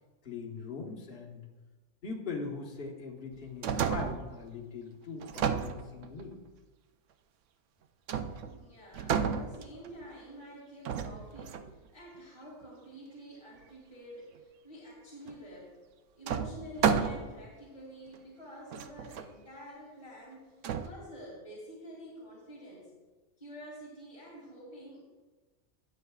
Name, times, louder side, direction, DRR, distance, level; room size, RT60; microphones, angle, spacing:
voice 1, 0.2-1.4 2.0-6.4, left 4 dB, 50° left, -3 dB, 1.5 m, -41 dB
sound 1, 3.3-4.4 5.2-6.3 8.1-8.6 8.9-10.0 10.9-11.8 15.3-15.4 16.3-17.5 18.1-18.2 18.7-19.3 20.6-20.9, right 7 dB, 80° right, 0.9 m, -32 dB
voice 2, 8.5-15.7 16.1-20.5 20.8-22.9 23.4-25.0, equal, 30° left, -7 dB, 2.4 m, -48 dB
17.5 x 7.4 x 2.4 m, 1.2 s
omnidirectional pair, 1.2 m